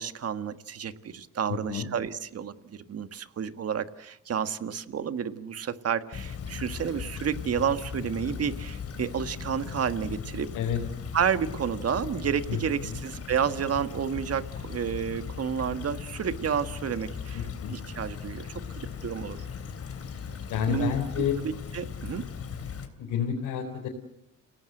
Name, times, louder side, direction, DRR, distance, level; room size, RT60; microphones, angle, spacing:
voice 1, 0.0-10.5 11.1-19.4 20.7-22.3, right 7 dB, 55° right, 11 dB, 1.7 m, -31 dB
voice 2, 1.5-1.9 10.5-10.8 12.5-13.0 17.3-17.8 20.5-21.3 23.0-23.9, left 8 dB, 85° left, 0 dB, 4.1 m, -30 dB
Stream / Trickle dribble, 6.1-22.9, left 6 dB, 50° left, 3.3 m, -38 dB
30.0 x 18.0 x 7.9 m, 0.84 s
cardioid pair, 90°, 30 cm